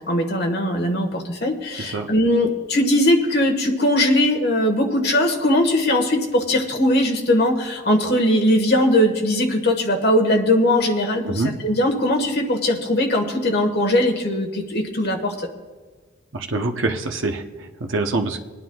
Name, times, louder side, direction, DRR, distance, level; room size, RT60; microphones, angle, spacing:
voice 1, 0.1-15.5, left 1 dB, 55° left, 2 dB, 1.4 m, -20 dB
voice 2, 16.3-18.4, right 3 dB, 80° right, 4 dB, 0.8 m, -25 dB
25.5 x 9.4 x 2.3 m, 1.4 s
head